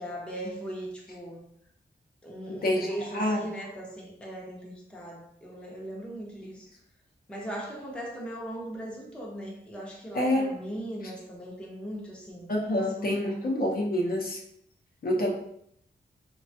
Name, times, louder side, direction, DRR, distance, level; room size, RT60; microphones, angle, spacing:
voice 1, 0.0-1.5 2.2-6.7 7.3-12.5 12.8-13.4, right 1 dB, 5° left, -3 dB, 0.5 m, -39 dB
voice 2, 10.1-10.4 12.5-14.4 15.0-15.3, left 1 dB, 50° left, 0 dB, 0.6 m, -26 dB
3.2 x 2.2 x 2.6 m, 0.71 s
wide cardioid pair, 150°, 19 cm